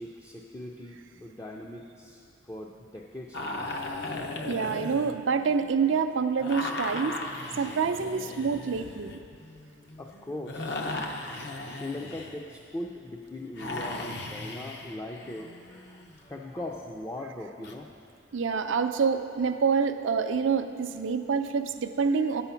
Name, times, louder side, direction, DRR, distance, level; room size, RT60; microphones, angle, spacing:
voice 1, 0.0-3.7 10.0-11.2 11.6-17.9 18.7-18.9, left 1 dB, 15° left, 0 dB, 0.4 m, -40 dB
sound 1, 3.3-5.9 6.4-12.6 13.6-16.2 17.6-17.7, left 2 dB, 60° left, 0.7 m, -37 dB
voice 2, 4.4-7.2 7.6-9.2 18.3-22.4, right 5 dB, 80° right, 8 dB, 0.5 m, -27 dB
9.6 x 7.0 x 5.7 m, 2.4 s
head